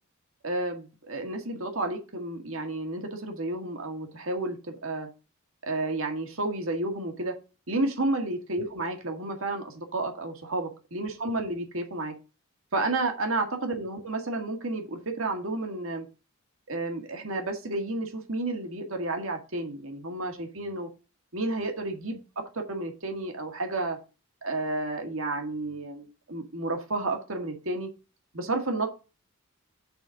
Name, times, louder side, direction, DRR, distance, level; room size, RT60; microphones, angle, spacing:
voice 1, 0.4-5.1 5.6-7.3 7.7-12.1 12.7-16.1 16.7-20.9 21.3-24.0 24.4-27.9 28.3-28.9, right 2 dB, 70° right, 4 dB, 1.8 m, -31 dB
6.9 x 4.2 x 6.4 m, 0.31 s
head